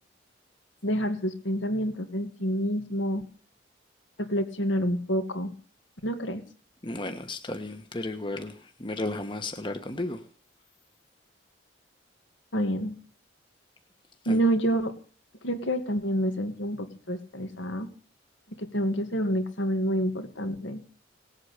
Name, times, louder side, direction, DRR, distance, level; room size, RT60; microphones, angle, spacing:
voice 1, 0.8-3.2 4.2-5.5 6.0-6.4 12.5-13.0 14.3-14.9 15.4-17.9 18.6-20.8, equal, 70° left, 2.3 m, -28 dB
voice 2, 6.8-10.2 14.2-14.4, left 2 dB, 25° left, 1.2 m, -34 dB
18.5 x 8.2 x 8.2 m
head